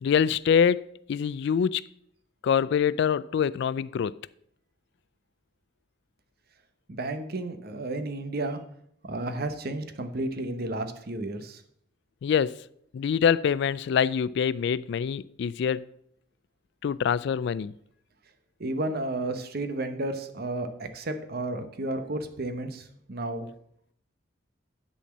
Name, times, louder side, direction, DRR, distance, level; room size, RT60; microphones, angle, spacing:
voice 1, 0.0-0.8 1.1-1.8 2.4-4.1 12.2-12.6 12.9-15.9 16.8-17.7, left 7 dB, 60° left, 0.3 m, -25 dB
voice 2, 6.9-8.6 9.0-11.6 18.6-23.5, right 2 dB, 50° right, 0.9 m, -32 dB
10.0 x 4.3 x 7.2 m
head